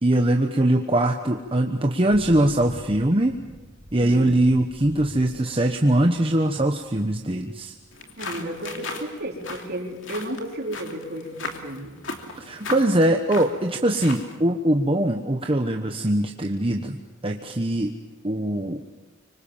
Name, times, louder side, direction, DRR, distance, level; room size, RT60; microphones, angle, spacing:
voice 1, 0.0-3.3 3.9-7.7 12.4-17.0 17.2-17.9 18.2-18.8, right 1 dB, 25° right, 3 dB, 1.1 m, -22 dB
Thunder / Rain, 1.6-10.7, equal, ahead, 8.0 m, -47 dB
voice 2, 4.0-4.4 8.2-12.0, right 1 dB, 50° right, 1 dB, 4.1 m, -33 dB
sound 1, 7.9-14.4, left 3 dB, 65° left, 2.9 m, -37 dB
25.5 x 25.0 x 7.3 m, 1.2 s
head